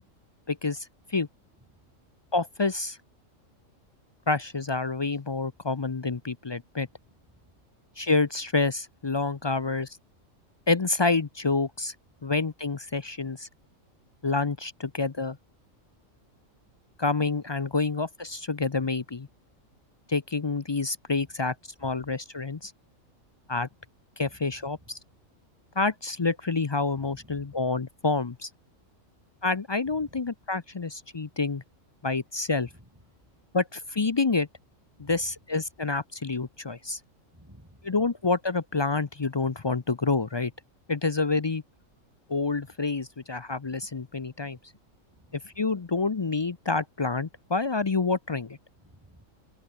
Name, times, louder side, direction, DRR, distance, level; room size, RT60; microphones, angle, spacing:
voice 1, 0.5-1.3 2.3-3.0 4.3-6.9 8.0-9.9 10.7-11.9 12.2-13.5 14.2-15.4 17.0-19.3 20.1-21.5 21.8-22.7 23.5-23.7 24.2-25.0 25.8-28.5 29.4-31.6 32.0-32.7 33.5-34.5 35.0-37.0 37.8-40.5 40.9-41.6 42.3-44.6 45.4-48.6, left 3 dB, 40° left, 0.4 m, -28 dB
voice 2, 6.9-7.5 12.2-12.3 21.8-22.1 24.2-24.9 27.0-27.6 29.9-30.2 32.6-33.4 35.0-35.3 37.3-38.0 42.6-42.7 45.1-45.6 48.8-49.3, right 1 dB, 15° right, 4.9 m, -56 dB
open air
omnidirectional pair, 1.4 m